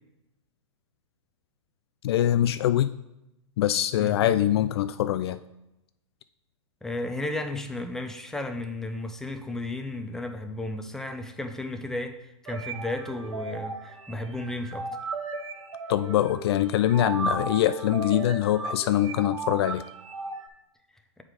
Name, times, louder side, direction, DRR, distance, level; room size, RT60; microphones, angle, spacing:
voice 1, 2.0-2.9 3.6-5.4 15.9-19.8, left 12 dB, 55° left, 12 dB, 0.4 m, -23 dB
voice 2, 6.8-14.9, left 2 dB, 5° left, 5 dB, 0.6 m, -34 dB
sound 1, 12.5-20.5, right 3 dB, 80° right, 1.0 m, -35 dB
7.3 x 4.9 x 4.9 m, 0.90 s
hypercardioid pair, 125°, 16 cm